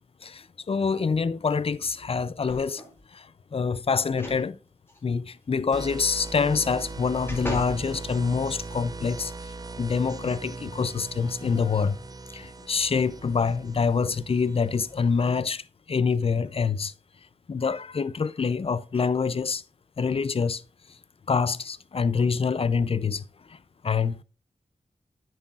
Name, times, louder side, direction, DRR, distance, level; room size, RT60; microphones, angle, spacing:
voice 1, 0.2-2.8 3.1-3.3 3.5-4.6 5.0-9.3 9.8-12.0 12.3-15.6 15.9-16.9 17.5-19.6 20.0-20.6 21.3-23.3 23.8-24.2, left 5 dB, 40° left, 0.4 m, -26 dB
sound 1, 2.4-3.0 4.1-4.5 4.9-5.0 6.6-7.8 8.4-8.5, equal, 15° left, 2.5 m, -36 dB
sound 2, 5.7-15.4, right 3 dB, 25° right, 0.5 m, -40 dB
9.8 x 7.8 x 2.4 m
wide cardioid pair, 85°, 14 cm